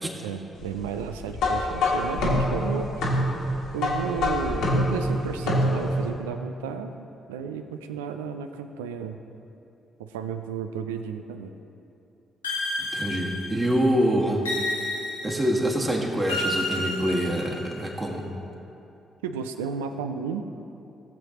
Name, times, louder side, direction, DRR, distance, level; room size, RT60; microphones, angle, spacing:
voice 1, 0.2-3.1 3.7-9.2 10.0-11.5 19.2-20.4, right 6 dB, 80° right, 8 dB, 0.4 m, -33 dB
sound 1, 1.3-6.1, left 1 dB, 65° left, 1.5 m, -25 dB
sound 2, 12.4-13.8 14.4-15.6 16.3-17.8, left 1 dB, 90° left, 1.0 m, -30 dB
voice 2, 12.8-14.5 15.2-18.2, equal, 25° right, -1 dB, 1.8 m, -25 dB
16.0 x 7.4 x 2.9 m, 2.8 s
figure-of-eight pair, 40°, 0 cm